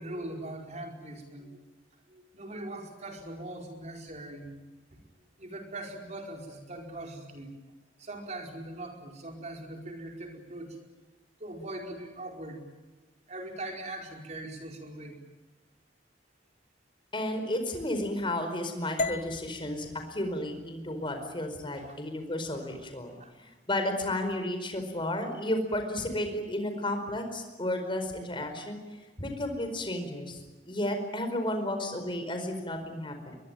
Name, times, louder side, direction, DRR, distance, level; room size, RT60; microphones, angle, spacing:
voice 1, 0.0-1.6 2.1-4.5 4.9-5.0 5.4-7.5 8.0-10.8 11.4-12.6 13.3-15.2 21.8-22.0 22.5-22.6 23.2-23.3, right 1 dB, 40° right, 2 dB, 4.8 m, -41 dB
voice 2, 17.1-30.4 30.6-33.4, left 1 dB, 30° left, 6 dB, 4.8 m, -33 dB
sound 1, 19.0-23.1, left 2 dB, 45° left, 1.0 m, -39 dB
23.5 x 22.0 x 9.3 m, 1.2 s
head